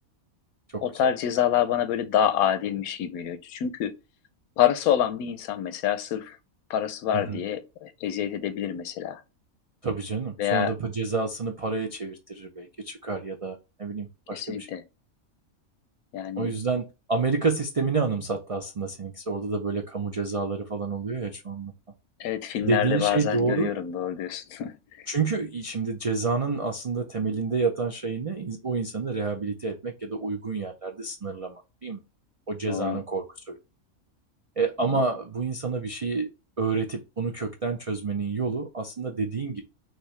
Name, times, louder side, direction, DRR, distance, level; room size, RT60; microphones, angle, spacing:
voice 1, 0.8-3.9 4.6-6.4 6.7-9.2 10.4-10.7 14.3-14.8 16.1-16.5 22.2-25.1 32.7-33.0 34.8-35.0, left 10 dB, 90° left, 1.1 m, -27 dB
voice 2, 9.8-14.7 16.4-21.7 22.6-23.7 25.1-32.0 32.5-33.6 34.6-36.3 36.6-39.6, right 4 dB, 65° right, 0.3 m, -29 dB
5.6 x 2.9 x 3.2 m
omnidirectional pair, 1.5 m